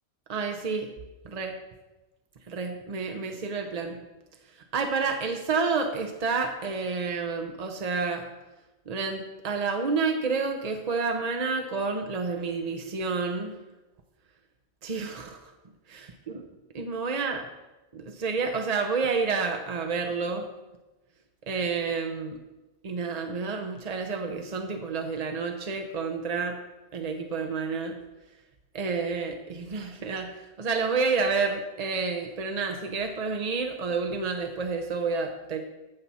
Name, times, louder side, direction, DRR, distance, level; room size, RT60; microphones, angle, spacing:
voice 1, 0.3-0.9 1.2-1.6 2.5-4.0 4.7-8.3 8.9-13.6 14.8-15.4 15.9-16.4 16.7-17.4 17.9-20.5 21.5-22.4 22.8-26.6 26.9-28.0 28.7-30.3 30.6-35.6, right 4 dB, 40° right, 4 dB, 0.6 m, -29 dB
14.5 x 5.9 x 4.1 m, 1.1 s
omnidirectional pair, 1.5 m